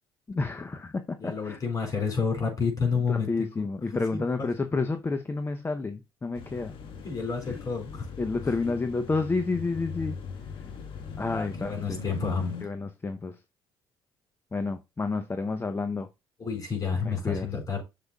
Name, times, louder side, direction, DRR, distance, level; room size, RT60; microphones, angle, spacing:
voice 1, 0.3-1.6 3.1-6.8 7.5-7.6 8.2-10.2 11.2-12.0 12.6-13.4 14.5-16.1 17.0-17.5, left 3 dB, 25° left, 0.7 m, -30 dB
voice 2, 1.2-3.7 4.1-4.5 7.0-8.1 11.3-12.5 16.4-17.8, left 5 dB, 40° left, 4.5 m, -30 dB
sound 1, 6.3-12.6, left 5 dB, 60° left, 1.5 m, -40 dB
8.0 x 6.7 x 2.3 m
supercardioid pair, 70°, 10 cm